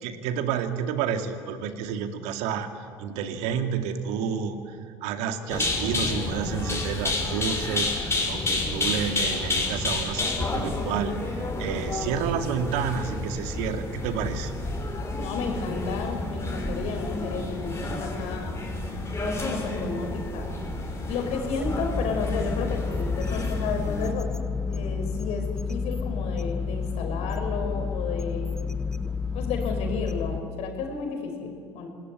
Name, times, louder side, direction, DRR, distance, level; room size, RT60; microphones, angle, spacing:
voice 1, 0.0-2.7 3.0-11.1 11.6-14.5, right 7 dB, 65° right, 7 dB, 2.3 m, -30 dB
sound 1, 5.5-24.1, left 2 dB, 20° left, 6.0 m, -30 dB
voice 2, 15.2-18.6 19.2-20.5 21.1-24.3 24.7-28.5 29.3-31.9, left 4 dB, 60° left, 3 dB, 5.9 m, -32 dB
sound 2, 21.6-30.4, left 5 dB, 5° left, 1.1 m, -30 dB
26.5 x 20.0 x 9.8 m, 2.3 s
hypercardioid pair, 65°, 12 cm